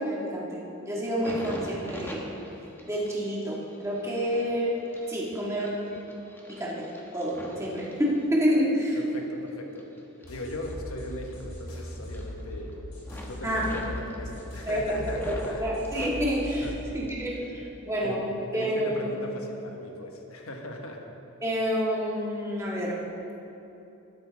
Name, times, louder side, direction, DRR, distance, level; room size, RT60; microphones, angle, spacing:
voice 1, 0.0-2.2 2.8-4.8 5.1-5.7 6.5-6.9 7.1-9.0 13.4-13.7 14.7-16.7 16.9-18.2 18.5-19.2 21.4-23.0, equal, 15° right, -5 dB, 1.9 m, -28 dB
sound 1, 1.0-8.7 9.1-11.7 12.0-12.7 13.0-15.5 15.8-17.4 17.7-18.4 19.0-19.2, equal, 10° left, 1.0 m, -45 dB
voice 2, 9.0-9.9 10.3-12.8 13.2-15.6 16.6-16.8 17.6-17.7 18.0-18.2 18.5-21.0, left 1 dB, 75° left, 2 dB, 1.4 m, -39 dB
sound 2, 10.2-16.8, left 1 dB, 90° left, 3.0 m, -39 dB
12.5 x 12.5 x 3.6 m, 3.0 s
head